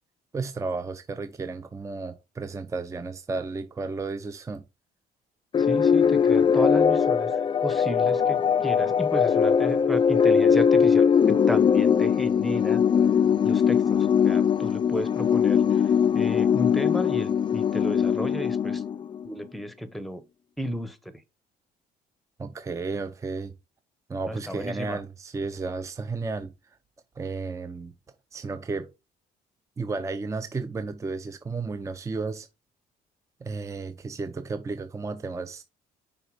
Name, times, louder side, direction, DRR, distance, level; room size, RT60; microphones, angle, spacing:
voice 1, 0.3-4.6 22.4-23.5 24.1-26.8 27.2-27.9 28.3-28.9 29.8-32.5 33.4-35.6, right 4 dB, 20° right, 0.6 m, -33 dB
sound 1, 5.5-19.3, left 7 dB, 30° left, 0.4 m, -21 dB
voice 2, 5.6-12.8 13.4-18.8 19.2-20.2 20.6-21.2 24.3-25.0, equal, ahead, 0.9 m, -34 dB
5.5 x 4.0 x 4.7 m
cardioid pair, 110°, 17 cm